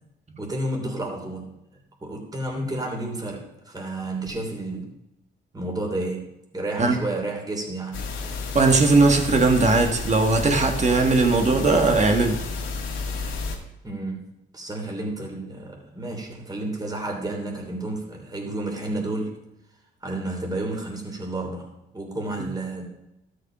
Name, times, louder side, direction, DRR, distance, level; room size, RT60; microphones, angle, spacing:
voice 1, 0.4-1.5 2.0-4.9 5.5-8.1 13.8-14.3 14.5-19.4 20.0-22.9, right 2 dB, 20° right, 0 dB, 3.0 m, -31 dB
sound 1, 7.9-13.6, left 4 dB, 90° left, 2.1 m, -31 dB
voice 2, 8.5-12.4, right 3 dB, 35° right, 4 dB, 1.8 m, -19 dB
13.0 x 6.6 x 4.9 m, 0.89 s
cardioid pair, 90°, 20 cm